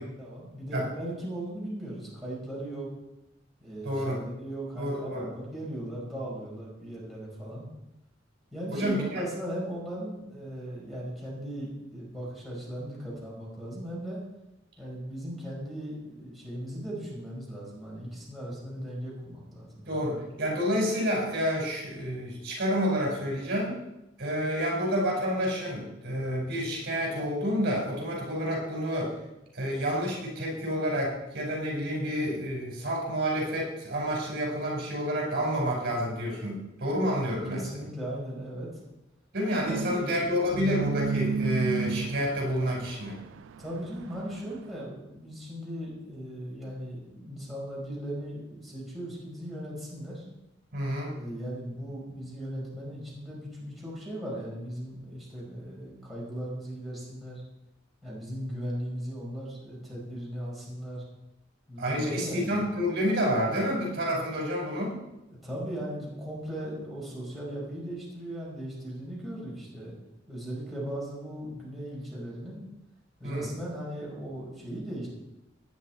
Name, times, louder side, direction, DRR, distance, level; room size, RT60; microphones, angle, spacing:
voice 1, 0.2-2.9 3.6-7.7 8.5-14.2 14.8-19.9 37.5-38.8 39.6-40.6 43.6-50.2 51.1-57.4 58.0-61.0 61.7-62.5 65.3-69.9 70.3-72.6 73.2-75.1, right 1 dB, ahead, -5 dB, 5.1 m, -38 dB
voice 2, 3.8-4.2 4.8-5.3 8.7-9.2 19.9-23.8 24.2-29.1 29.5-37.7 39.3-43.2 50.7-51.2 61.8-65.0 73.2-73.5, equal, 55° right, -2 dB, 5.0 m, -29 dB
sound 1, 39.7-44.5, right 5 dB, 80° right, 0.4 m, -33 dB
18.0 x 9.7 x 4.4 m, 0.91 s
head